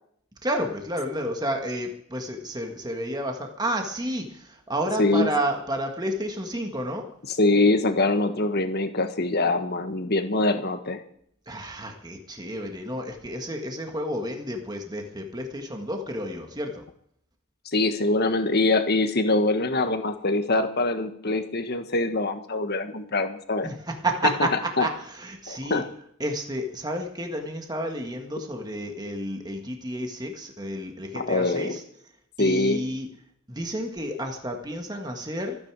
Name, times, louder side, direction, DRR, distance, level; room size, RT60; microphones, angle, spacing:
voice 1, 0.4-7.0 11.5-16.8 23.6-25.8 26.2-31.8 32.4-33.1 33.5-35.6, right 1 dB, 20° right, 3 dB, 1.7 m, -31 dB
voice 2, 5.0-5.3 7.4-11.0 17.7-23.7 24.8-24.9 25.5-25.9 31.1-31.7 32.4-32.8, left 2 dB, 50° left, 8 dB, 1.5 m, -24 dB
25.5 x 9.6 x 4.8 m, 0.67 s
head